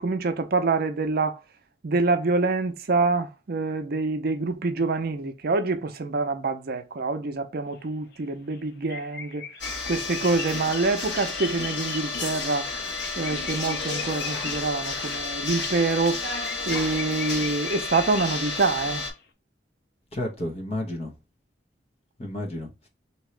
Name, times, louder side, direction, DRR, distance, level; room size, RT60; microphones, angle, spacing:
voice 1, 0.0-1.4 1.8-9.5 9.9-12.7 13.2-16.3 16.7-19.0, right 3 dB, 60° right, 0.5 m, -26 dB
sound 1, 7.7-7.8 8.1-8.2 8.5-8.6 8.9-18.7 19.0-19.1, left 6 dB, 65° left, 0.6 m, -39 dB
sound 2, 9.6-19.1, left 3 dB, 80° left, 1.3 m, -31 dB
voice 2, 20.1-21.1 22.2-22.9, left 1 dB, 35° left, 1.1 m, -32 dB
3.5 x 2.9 x 3.2 m
head